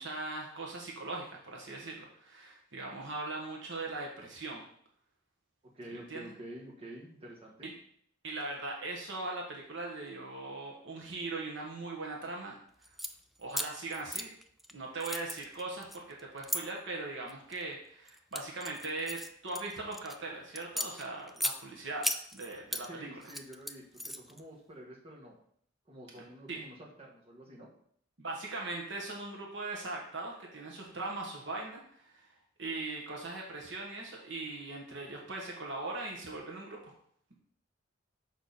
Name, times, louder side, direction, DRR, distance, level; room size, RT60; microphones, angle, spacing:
voice 1, 0.0-4.6 5.9-6.3 7.6-7.7 8.2-12.5 13.4-14.3 14.7-23.1 26.2-26.6 28.2-32.3 32.6-36.9, right 2 dB, 65° right, -1 dB, 1.4 m, -40 dB
voice 2, 5.7-7.7 22.9-25.4 25.8-27.7, right 1 dB, 30° right, -3 dB, 1.6 m, -48 dB
sound 1, 12.8-13.1 13.5-14.7 15.0-16.6 17.3-17.6 18.1-20.2 20.6-21.6 22.0-22.9 23.2-24.4, equal, ahead, 0.3 m, -36 dB
6.5 x 5.1 x 4.1 m, 0.64 s
head